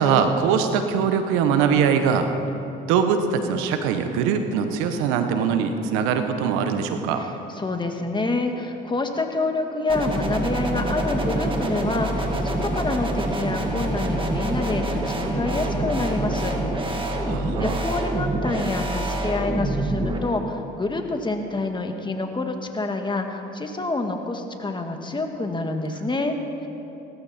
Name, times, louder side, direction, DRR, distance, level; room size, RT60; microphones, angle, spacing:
voice 1, 0.0-2.3 2.9-7.2 17.2-17.8, right 6 dB, 85° right, 7 dB, 1.1 m, -22 dB
voice 2, 7.2-17.0 17.6-26.7, left 2 dB, 20° left, 5 dB, 1.7 m, -27 dB
sound 1, 9.9-20.2, right 1 dB, 25° right, 2.1 m, -26 dB
17.5 x 14.0 x 4.3 m, 3.0 s
supercardioid pair, 70°, 21 cm